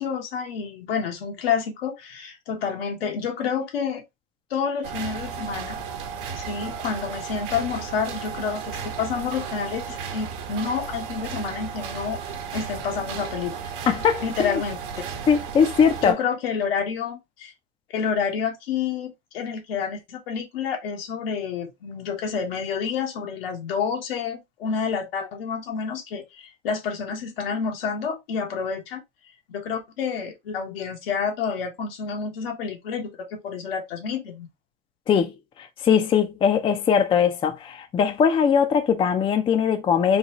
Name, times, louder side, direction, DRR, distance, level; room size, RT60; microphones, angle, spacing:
voice 1, 0.0-4.0 4.5-5.8 6.4-12.2 12.5-13.6 14.2-14.8 16.0-17.5 17.9-29.0 29.5-34.5, left 6 dB, 85° left, 1.3 m, -29 dB
sound 1, 4.8-16.1, right 6 dB, 65° right, 1.0 m, -34 dB
voice 2, 13.9-14.6 15.3-16.2 35.1-35.3 35.8-40.2, left 7 dB, 20° left, 0.5 m, -20 dB
4.0 x 2.3 x 2.9 m
supercardioid pair, 120°, 29 cm